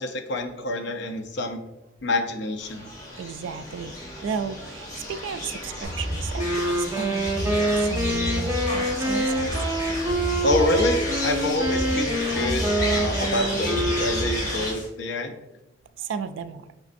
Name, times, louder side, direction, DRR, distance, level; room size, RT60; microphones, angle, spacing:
voice 1, 0.0-1.6 2.0-2.9 10.4-15.4, left 1 dB, 65° left, 6 dB, 0.5 m, -27 dB
sound 1, 2.6-14.7, left 1 dB, 20° left, 1.0 m, -33 dB
voice 2, 3.2-3.9 4.2-9.6 16.0-16.6, right 6 dB, 80° right, 11 dB, 0.3 m, -34 dB
sound 2, 5.8-14.9, equal, 40° left, 1.5 m, -32 dB
Wind instrument woodwind instrument, 6.3-14.7, right 1 dB, 15° right, 0.4 m, -26 dB
5.0 x 3.1 x 2.5 m, 0.93 s
head